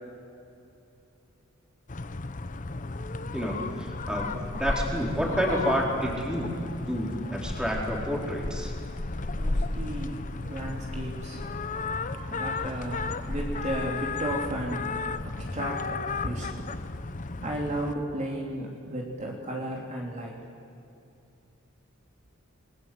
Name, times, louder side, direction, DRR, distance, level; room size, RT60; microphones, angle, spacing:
sound 1, 1.9-17.9, left 3 dB, 40° left, 0.8 m, -33 dB
voice 1, 3.3-6.5 6.9-8.7, equal, 5° right, -2 dB, 4.2 m, -29 dB
voice 2, 6.9-7.6 8.2-8.3 8.8-9.0 9.3-11.6 12.0-16.5 17.4-20.4, right 1 dB, 35° right, -1 dB, 3.5 m, -35 dB
29.5 x 21.5 x 7.9 m, 2.6 s
head